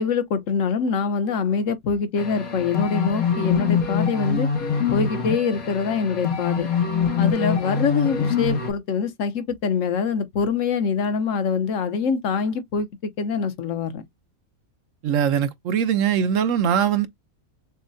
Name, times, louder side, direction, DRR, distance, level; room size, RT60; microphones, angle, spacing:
voice 1, 0.0-4.5 4.9-6.7 7.2-12.9 13.2-14.0, left 5 dB, 65° left, 1.2 m, -24 dB
sound 1, 2.2-8.7, left 6 dB, 85° left, 1.7 m, -24 dB
voice 2, 15.0-17.1, right 8 dB, 65° right, 1.1 m, -21 dB
6.4 x 2.2 x 2.6 m
omnidirectional pair, 1.5 m